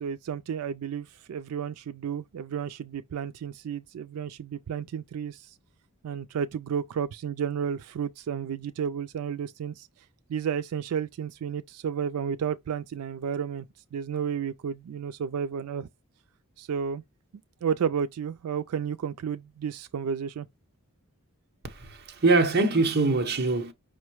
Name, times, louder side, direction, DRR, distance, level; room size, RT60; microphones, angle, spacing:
voice 1, 0.0-5.6 6.0-9.9 10.3-13.7 13.9-15.9 16.6-17.0 17.6-20.5, right 7 dB, 85° right, 0.4 m, -32 dB
voice 2, 21.6-23.7, right 3 dB, 45° right, 0.9 m, -23 dB
5.4 x 2.1 x 4.5 m
head